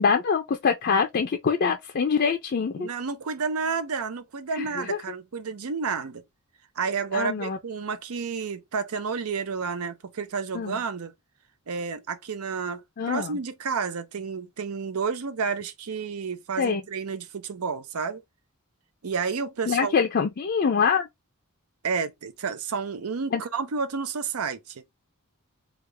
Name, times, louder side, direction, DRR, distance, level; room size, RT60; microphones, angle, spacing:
voice 1, 0.0-2.9 4.5-5.0 7.1-7.6 10.5-10.8 13.0-13.4 16.6-16.8 19.7-21.1 23.3-23.4, left 6 dB, 50° left, 0.4 m, -24 dB
voice 2, 2.8-6.2 6.8-11.1 11.7-18.2 19.0-19.9 21.8-24.8, right 5 dB, 85° right, 0.6 m, -30 dB
3.5 x 2.4 x 3.2 m
head